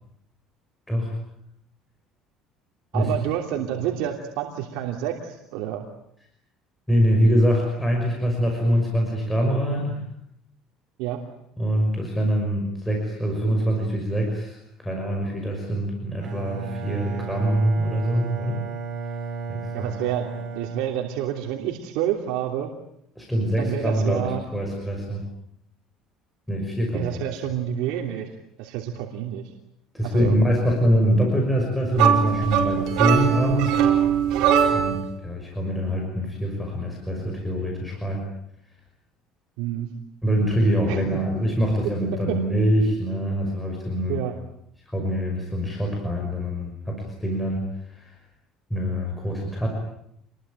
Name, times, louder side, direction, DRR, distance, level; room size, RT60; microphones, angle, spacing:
voice 1, 2.9-5.9 11.0-11.2 19.7-22.7 23.6-24.4 26.9-28.3 28.6-29.4 30.0-30.3 39.6-39.9 40.9-41.0 44.1-44.3, right 11 dB, 85° right, 2 dB, 3.1 m, -28 dB
voice 2, 6.9-10.0 11.6-18.6 19.5-19.9 23.2-25.2 26.5-27.2 29.9-33.9 34.7-38.2 40.2-44.2 44.9-48.1 48.7-49.7, equal, 5° left, 0 dB, 5.9 m, -24 dB
Bowed string instrument, 16.2-21.7, right 5 dB, 45° right, 4.2 m, -33 dB
sound 1, 31.9-35.1, right 9 dB, 65° right, 5.3 m, -21 dB
28.0 x 21.5 x 9.1 m, 0.74 s
cardioid pair, 160°, 0 cm